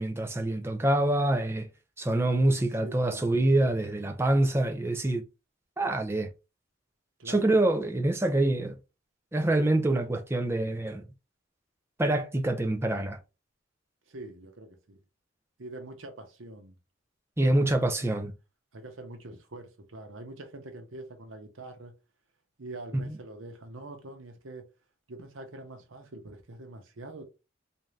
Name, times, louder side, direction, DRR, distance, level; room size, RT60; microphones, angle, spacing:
voice 1, 0.0-1.7 2.0-5.2 5.8-6.3 7.3-8.8 9.3-11.0 12.0-13.2 17.4-18.3 23.1-23.2, right 1 dB, 15° right, 0.5 m, -26 dB
voice 2, 2.6-3.3 7.2-7.4 14.1-15.0 15.6-16.7 17.4-17.9 18.7-21.9 22.6-24.6 25.1-27.2, right 2 dB, 85° right, 0.9 m, -44 dB
3.7 x 2.7 x 3.2 m
head